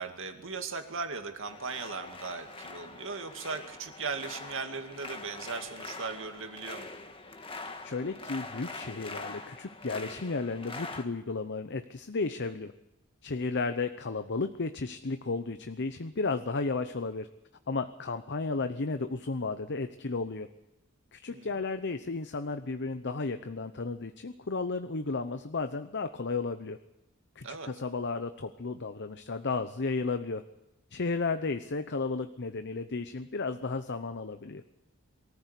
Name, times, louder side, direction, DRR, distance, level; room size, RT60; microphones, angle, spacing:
voice 1, 0.0-6.9 21.3-21.5 27.4-27.7, right 4 dB, 60° right, 6 dB, 2.3 m, -38 dB
sound 1, 1.5-11.0, left 3 dB, 25° left, 1.7 m, -44 dB
voice 2, 7.5-12.7 13.2-17.3 17.7-20.5 21.1-26.8 27.4-30.4 30.9-34.6, left 3 dB, 55° left, 9 dB, 0.8 m, -33 dB
23.5 x 14.5 x 8.3 m, 0.95 s
head